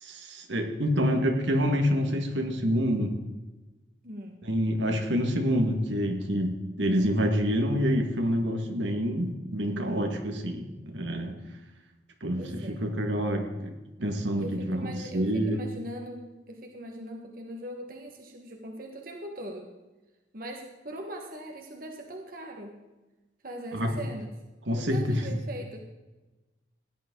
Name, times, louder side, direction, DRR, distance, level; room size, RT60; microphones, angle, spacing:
voice 1, 0.0-3.2 4.4-11.3 12.2-13.7 14.0-15.6 23.7-23.9 24.7-25.4, equal, 75° right, 3 dB, 1.9 m, -27 dB
voice 2, 4.0-4.4 9.7-10.1 12.4-12.8 14.4-19.7 20.3-22.8 23.4-24.3 24.7-25.8, right 1 dB, 50° right, 1 dB, 1.5 m, -40 dB
16.5 x 11.0 x 3.9 m, 1.1 s
head